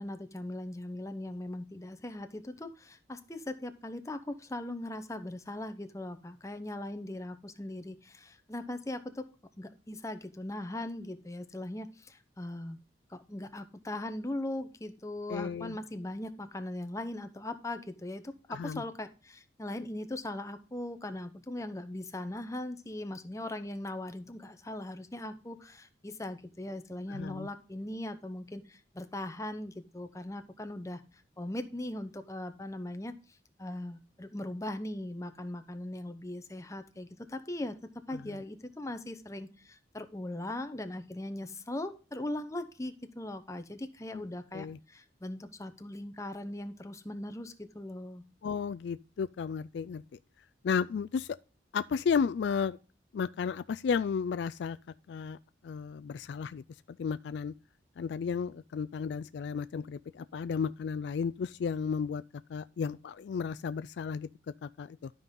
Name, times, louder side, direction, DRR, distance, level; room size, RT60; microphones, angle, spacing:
voice 1, 0.0-9.3 9.6-12.8 13.1-31.0 31.4-33.1 33.6-48.2, left 1 dB, 15° left, 0.8 m, -39 dB
voice 2, 15.3-15.8 18.5-18.8 27.1-27.5 38.1-38.4 44.1-44.2 44.5-44.8 48.4-50.2 50.6-51.4 51.7-52.8 53.1-54.8 55.1-55.4 55.6-57.5 58.0-62.2 62.5-64.3 64.6-65.1, left 6 dB, 65° left, 0.3 m, -33 dB
12.5 x 5.3 x 3.8 m
head